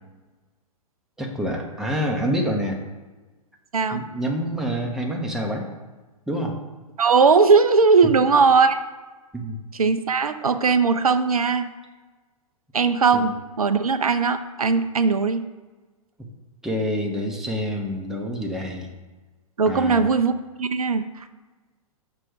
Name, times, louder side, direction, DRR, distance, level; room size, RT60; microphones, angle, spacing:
voice 1, 1.2-2.8 3.9-5.7 6.3-6.6 9.3-9.6 13.1-13.3 16.6-18.9 19.7-20.1, equal, ahead, 0 dB, 0.7 m, -27 dB
voice 2, 3.7-4.0 7.0-8.8 9.7-11.7 12.7-15.4 19.6-21.1, right 5 dB, 80° right, 10 dB, 0.4 m, -19 dB
6.1 x 3.8 x 4.6 m, 1.3 s
figure-of-eight pair, 105°, 18 cm